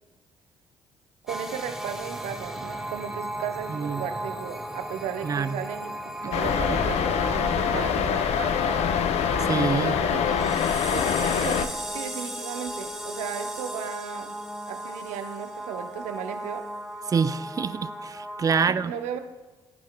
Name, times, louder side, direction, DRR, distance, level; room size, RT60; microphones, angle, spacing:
voice 1, 1.2-8.9 9.8-10.2 10.9-14.3 14.7-16.7 18.6-19.2, right 9 dB, 70° right, 0.7 m, -35 dB
sound 1, 1.3-18.7, right 1 dB, 5° right, 0.8 m, -36 dB
voice 2, 3.7-4.0 5.2-5.6 9.4-10.0 17.1-18.9, right 6 dB, 30° right, 0.4 m, -26 dB
sound 2, 6.3-11.7, left 8 dB, 60° left, 0.5 m, -25 dB
Boom, 6.4-11.2 11.4-11.5 12.7-12.8, left 2 dB, 25° left, 0.7 m, -36 dB
14.5 x 5.6 x 2.2 m
hypercardioid pair, 50°, 12 cm